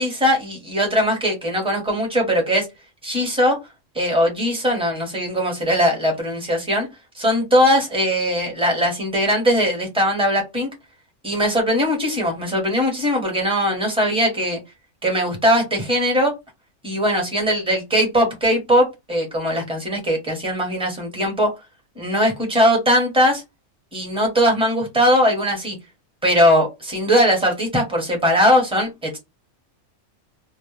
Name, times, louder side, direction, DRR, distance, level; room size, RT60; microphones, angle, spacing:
voice 1, 0.0-2.7 3.0-3.6 3.9-6.9 7.1-10.7 11.2-14.6 15.0-16.3 16.8-21.5 22.0-23.4 23.9-25.8 26.2-29.2, equal, 5° right, 0 dB, 0.8 m, -20 dB
2.3 x 2.0 x 3.1 m, 0.22 s
omnidirectional pair, 1.4 m